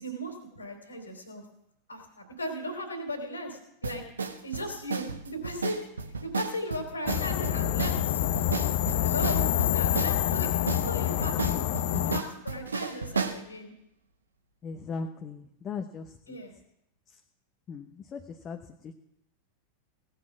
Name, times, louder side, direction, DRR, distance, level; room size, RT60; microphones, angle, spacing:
voice 1, 0.0-1.4 1.9-4.0 4.4-5.8 6.2-8.2 9.0-13.7 16.3-16.5, equal, 75° left, 5 dB, 3.3 m, -37 dB
sound 1, 3.8-13.4, right 5 dB, 75° right, 1.1 m, -34 dB
sound 2, 7.1-12.2, left 12 dB, 50° left, 0.9 m, -27 dB
voice 2, 14.6-16.4 17.7-18.6 18.8-18.9, left 5 dB, 25° left, 4 dB, 1.1 m, -38 dB
17.5 x 9.5 x 6.0 m, 0.80 s
figure-of-eight pair, 90°, 0 cm